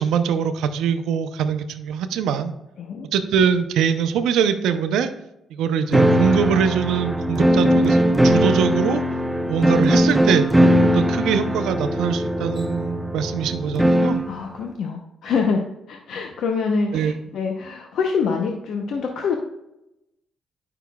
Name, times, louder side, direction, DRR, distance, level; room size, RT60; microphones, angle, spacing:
voice 1, 0.0-2.5 3.1-5.1 5.5-9.0 9.5-14.2 16.9-17.1, right 7 dB, 85° right, 9 dB, 0.5 m, -23 dB
sound 1, 5.9-14.3, equal, 10° right, 0.5 m, -19 dB
voice 2, 14.3-15.6 15.9-19.4, left 5 dB, 70° left, 2 dB, 0.7 m, -25 dB
9.2 x 5.7 x 2.3 m, 0.89 s
cardioid pair, 90°, 0 cm